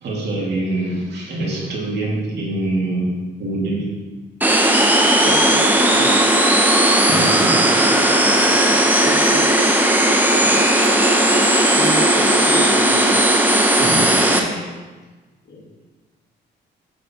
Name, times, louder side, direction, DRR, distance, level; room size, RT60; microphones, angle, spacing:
voice 1, 0.0-3.1 3.4-3.9 7.1-8.2 8.4-8.8 10.4-10.6 13.8-14.7, right 2 dB, 60° right, -4 dB, 2.5 m, -25 dB
sound 1, 4.4-14.4, right 1 dB, 10° right, 0.9 m, -15 dB
voice 2, 5.2-6.1 8.9-9.5 11.8-13.1 15.5-15.6, left 1 dB, 55° left, -2 dB, 2.1 m, -29 dB
8.0 x 5.2 x 4.4 m, 1.3 s
cardioid pair, 90°, 20 cm